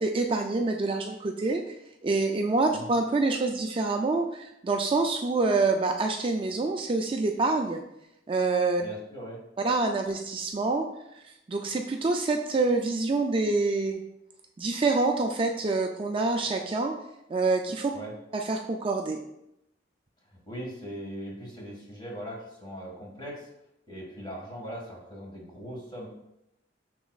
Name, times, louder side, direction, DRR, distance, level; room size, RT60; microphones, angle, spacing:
voice 1, 0.0-1.6 2.0-7.8 8.3-8.8 9.6-10.9 11.2-11.3 11.5-14.0 14.6-16.9 17.3-17.9 18.3-19.2, right 3 dB, 30° right, 3 dB, 0.4 m, -26 dB
voice 2, 8.8-9.4 17.9-18.1 20.3-23.5 23.9-26.1, equal, 25° left, -2 dB, 1.7 m, -40 dB
7.0 x 6.1 x 2.4 m, 0.83 s
head